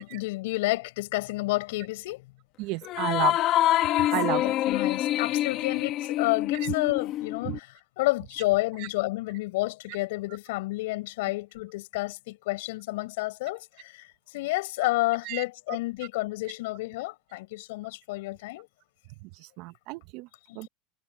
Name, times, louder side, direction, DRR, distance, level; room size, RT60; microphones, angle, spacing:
voice 1, 0.0-2.3 4.3-18.7 20.5-20.7, left 20 dB, 80° left, 6.0 m, -30 dB
voice 2, 2.6-3.4 4.1-4.4 6.6-6.7 7.5-7.6 15.3-15.4 19.6-20.3 20.5-20.7, right 22 dB, 65° right, 1.1 m, -31 dB
sound 1, 2.8-7.6, left 14 dB, 50° left, 1.7 m, -26 dB
supercardioid pair, 120°, 0 cm